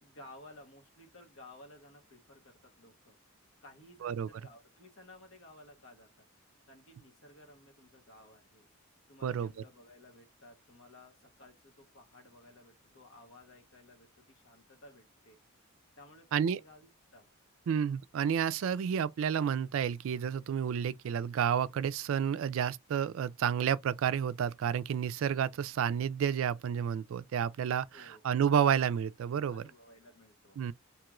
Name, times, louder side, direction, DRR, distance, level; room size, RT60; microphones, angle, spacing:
voice 1, 0.0-3.2 3.6-6.3 6.7-8.7 9.1-15.4 16.0-17.3 27.9-28.2 29.5-30.6, left 1 dB, 65° left, 1.0 m, -56 dB
voice 2, 17.7-29.7 30.6-30.7, right 8 dB, 65° right, 0.3 m, -30 dB
2.9 x 2.4 x 3.0 m
head